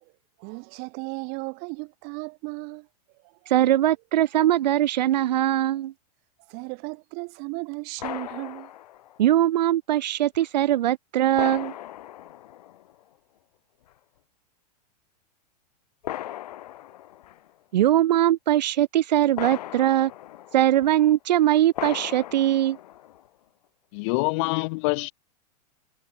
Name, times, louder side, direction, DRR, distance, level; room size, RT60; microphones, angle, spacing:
voice 1, 0.4-2.9 6.5-8.7, right 37 dB, 45° right, 1.6 m, -35 dB
voice 2, 3.5-5.9 9.2-11.7 17.7-20.1 20.5-22.8, right 12 dB, 80° right, 0.5 m, -21 dB
sound 1, 8.0-9.2 10.3-10.5 11.3-13.0 13.9-14.0 16.0-17.5 19.4-21.0 21.7-23.3, left 13 dB, 70° left, 4.2 m, -37 dB
voice 3, 23.9-25.1, left 29 dB, 45° left, 0.5 m, -25 dB
hypercardioid pair, 125°, 21 cm